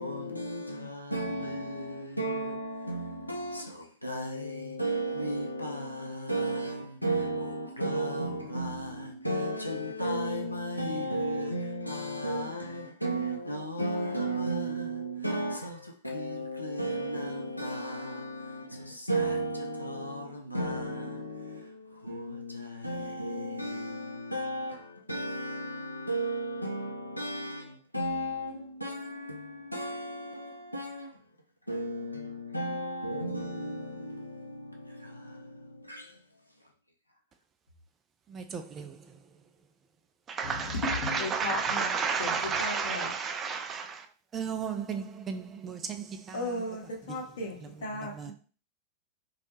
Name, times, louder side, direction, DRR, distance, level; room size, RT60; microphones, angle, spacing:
voice 1, 0.0-31.2 31.7-36.2, right 1 dB, 90° left, 0.4 m, -34 dB
voice 2, 38.3-38.9 40.3-44.0 44.3-46.4 47.1-47.2 48.1-48.3, right 6 dB, 25° right, 0.4 m, -32 dB
voice 3, 40.4-41.9 42.2-43.2 46.3-48.3, left 2 dB, 60° left, 0.7 m, -35 dB
2.3 x 2.1 x 2.9 m
figure-of-eight pair, 90°, 0 cm